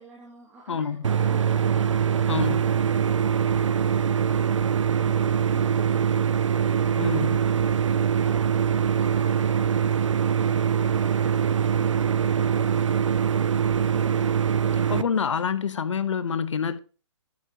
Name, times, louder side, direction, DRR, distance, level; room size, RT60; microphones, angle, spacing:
voice 1, 0.0-3.0 8.7-15.6, right 3 dB, 10° right, 2.2 m, -48 dB
voice 2, 0.7-1.1 2.3-2.6 7.0-7.4 14.9-16.8, left 7 dB, 75° left, 1.0 m, -27 dB
sound 1, 1.0-15.0, right 8 dB, 85° right, 0.7 m, -23 dB
10.5 x 10.5 x 3.0 m
hypercardioid pair, 155°, 16 cm